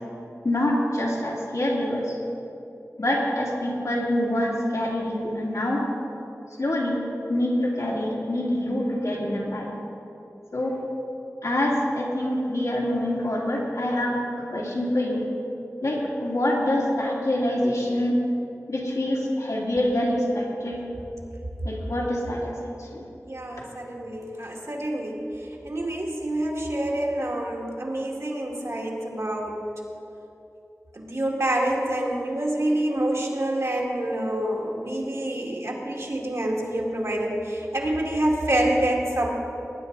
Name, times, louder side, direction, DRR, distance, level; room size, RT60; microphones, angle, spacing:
voice 1, 0.4-2.2 3.0-5.8 6.6-7.0 7.3-9.7 10.5-10.8 11.4-15.3 15.8-18.2 18.7-20.8 21.6-22.5 22.8-23.0, left 1 dB, 75° left, -5 dB, 2.6 m, -25 dB
voice 2, 23.3-25.2 25.6-29.6 30.9-39.3, right 1 dB, 60° right, -2 dB, 2.1 m, -27 dB
19.0 x 9.9 x 4.0 m, 2.9 s
wide cardioid pair, 55°, 6 cm